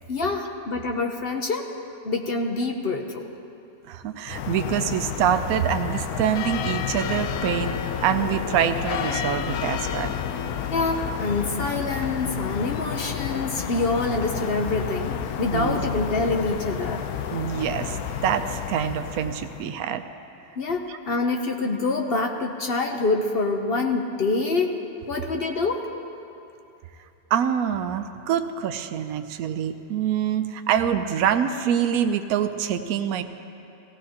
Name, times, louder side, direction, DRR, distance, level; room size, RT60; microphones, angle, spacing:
voice 1, 0.1-1.7 2.0-3.3 10.7-17.0 20.6-24.8 25.1-25.9, left 3 dB, 50° left, 3 dB, 0.8 m, -26 dB
voice 2, 3.9-10.2 15.5-15.9 17.3-20.0 20.9-21.0 27.3-33.2, right 9 dB, 75° right, 7 dB, 1.0 m, -25 dB
sound 1, 4.3-19.7, left 8 dB, 85° left, 1.1 m, -30 dB
17.0 x 16.0 x 2.9 m, 2.7 s
omnidirectional pair, 1.6 m